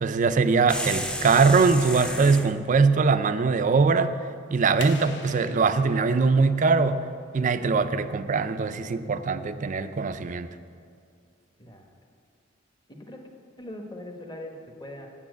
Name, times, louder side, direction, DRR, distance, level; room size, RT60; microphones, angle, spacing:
voice 1, 0.0-4.2 4.5-7.1 7.3-10.5, right 4 dB, 40° right, 11 dB, 0.4 m, -22 dB
sound 1, 0.7-2.5, left 1 dB, 5° left, 0.6 m, -32 dB
sound 2, 4.8-7.5, left 5 dB, 60° left, 0.7 m, -43 dB
voice 2, 11.6-11.9 12.9-13.2 13.6-15.1, left 1 dB, 20° left, 3 dB, 1.0 m, -41 dB
8.5 x 7.3 x 7.9 m, 2.3 s
head